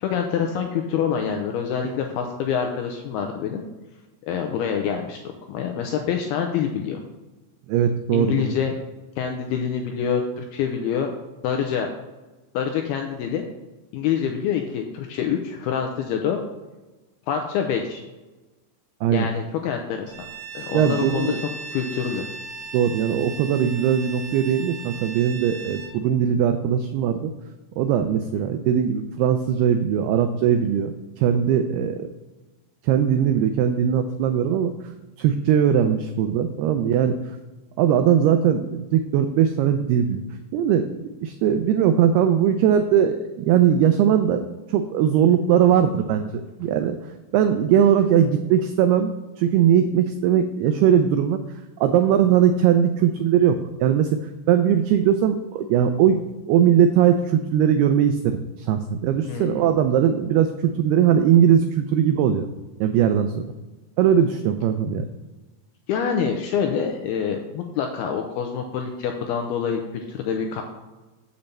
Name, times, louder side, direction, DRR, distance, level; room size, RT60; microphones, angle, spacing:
voice 1, 0.0-3.6 4.2-5.2 5.5-7.0 8.1-8.8 9.2-11.1 11.4-11.9 12.5-13.4 13.9-16.4 17.3-18.0 19.1-20.3 20.5-21.3 21.7-22.2 28.3-28.5 59.2-59.7 65.9-70.6, left 7 dB, 90° left, 3 dB, 2.3 m, -26 dB
voice 2, 7.7-8.5 19.0-19.3 20.7-21.4 22.7-27.3 27.8-32.1 32.8-34.7 35.2-37.2 37.8-40.2 40.5-47.0 47.3-49.1 49.4-51.4 51.8-54.1 54.5-56.2 56.5-62.5 62.8-63.4 64.0-65.1, right 9 dB, 90° right, 7 dB, 2.2 m, -20 dB
Bowed string instrument, 20.1-26.0, right 4 dB, 70° right, 2.7 m, -37 dB
6.9 x 5.3 x 7.3 m, 1.2 s
omnidirectional pair, 5.2 m